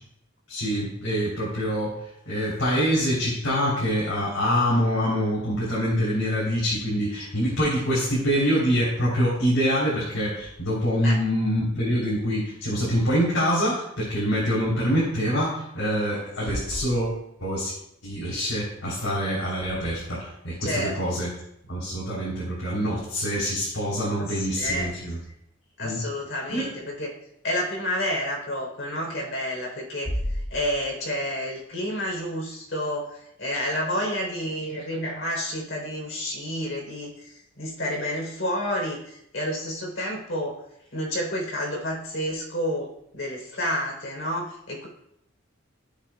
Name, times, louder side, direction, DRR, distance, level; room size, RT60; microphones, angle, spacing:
voice 1, 0.5-2.0 2.3-17.7 18.0-21.3 21.7-25.2 25.8-26.0 26.5-26.7, equal, 80° left, -7 dB, 3.7 m, -25 dB
voice 2, 20.6-21.0 24.2-24.9 25.8-27.1 27.4-40.6 40.9-42.9 43.1-44.9, equal, 65° left, -1 dB, 3.9 m, -30 dB
16.5 x 7.4 x 2.4 m, 0.76 s
head